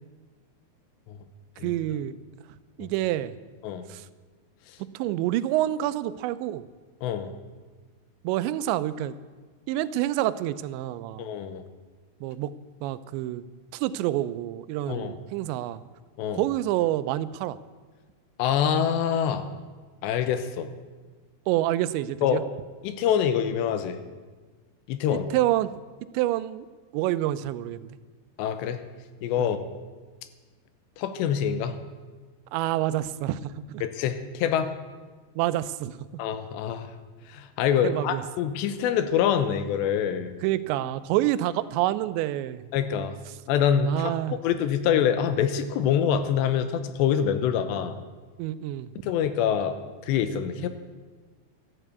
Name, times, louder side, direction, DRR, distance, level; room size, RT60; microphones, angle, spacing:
voice 1, 1.6-2.2 2.8-3.3 3.9-4.1 4.9-6.6 8.2-9.2 9.7-11.3 12.2-12.5 12.8-13.4 13.7-15.8 16.3-17.6 21.5-22.4 25.1-25.8 26.1-26.7 26.9-27.9 29.4-29.5 32.5-33.8 35.4-36.0 37.8-38.2 40.4-42.6 43.8-44.4 48.4-48.9 50.6-50.7, right 14 dB, 90° right, 15 dB, 2.9 m, -27 dB
voice 2, 7.0-7.3 11.2-11.6 14.9-15.2 16.2-16.4 18.4-19.4 20.0-20.7 22.2-22.4 22.8-24.0 24.9-25.3 28.4-28.8 29.2-29.6 31.0-31.8 33.8-34.7 36.2-36.9 37.3-40.3 42.7-43.2 43.5-48.0 49.0-49.8 50.0-50.7, left 8 dB, 85° left, 10 dB, 3.1 m, -25 dB
13.5 x 11.0 x 8.3 m, 1.4 s
omnidirectional pair, 5.0 m